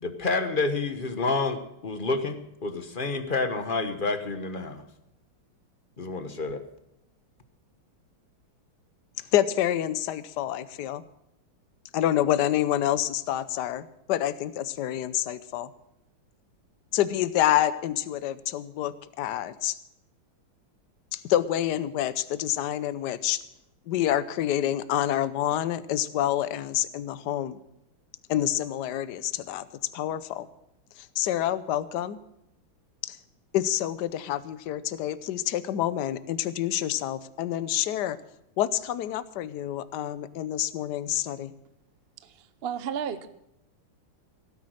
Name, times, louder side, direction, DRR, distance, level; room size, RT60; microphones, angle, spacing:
voice 1, 0.0-2.4 2.6-4.8 6.0-6.6, left 3 dB, 35° left, 9 dB, 0.9 m, -29 dB
voice 2, 9.3-11.0 11.9-15.7 16.9-19.8 21.1-23.4 23.9-27.6 28.3-29.7 29.9-30.5 31.2-32.2 33.0-33.2 33.5-38.2 38.6-41.5, left 12 dB, 65° left, 15 dB, 1.2 m, -27 dB
voice 3, 42.2-43.3, right 8 dB, 55° right, 12 dB, 0.6 m, -33 dB
17.0 x 9.7 x 6.4 m, 0.83 s
omnidirectional pair, 2.3 m